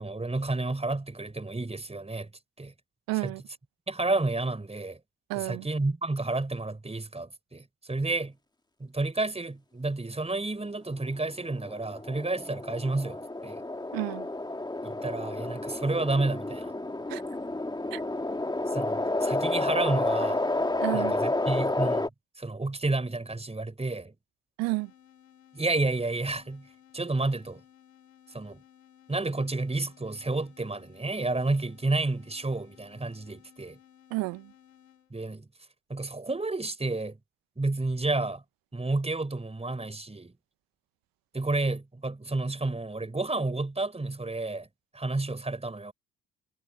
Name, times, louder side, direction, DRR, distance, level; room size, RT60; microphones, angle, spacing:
voice 1, 0.0-2.3 2.6-2.7 3.2-3.3 3.9-5.0 5.3-8.4 8.8-13.6 14.8-16.7 18.7-20.4 20.9-22.1 22.4-24.1 25.5-26.7 26.9-27.6 28.3-28.6 29.1-33.8 35.1-35.5 35.9-37.2 37.6-38.4 38.7-40.3 41.3-44.7 44.9-45.9, right 2 dB, 15° right, 4.8 m, -30 dB
voice 2, 3.1-3.4 5.3-5.7 13.9-14.3 17.1-17.2 17.9-18.0 20.8-21.1 24.6-24.9 34.1-34.5, right 23 dB, 65° right, 1.6 m, -31 dB
sound 1, 11.3-22.1, left 2 dB, 10° left, 2.7 m, -30 dB
sound 2, 24.7-35.1, left 10 dB, 80° left, 4.5 m, -58 dB
figure-of-eight pair, 45°, 38 cm